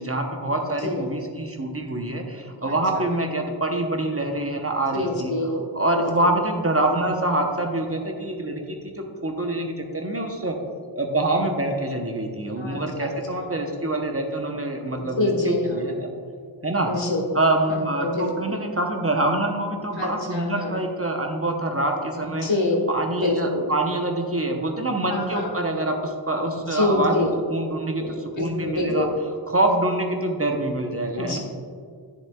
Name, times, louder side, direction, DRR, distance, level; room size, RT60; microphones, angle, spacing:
voice 1, 0.0-5.3 5.7-10.6 11.0-16.1 16.6-16.9 17.3-22.5 22.9-29.1 29.5-31.4, right 2 dB, 30° right, 2 dB, 0.9 m, -25 dB
voice 2, 2.6-3.1 4.9-5.6 6.0-6.3 12.6-13.1 13.5-13.7 15.2-15.9 16.8-17.3 17.7-18.6 20.0-20.8 22.4-22.7 23.1-23.7 25.1-25.5 26.7-27.3 28.0-29.1 31.2-31.4, left 2 dB, 75° left, 0 dB, 1.4 m, -26 dB
10.5 x 7.0 x 2.3 m, 2.2 s
wide cardioid pair, 55°, 46 cm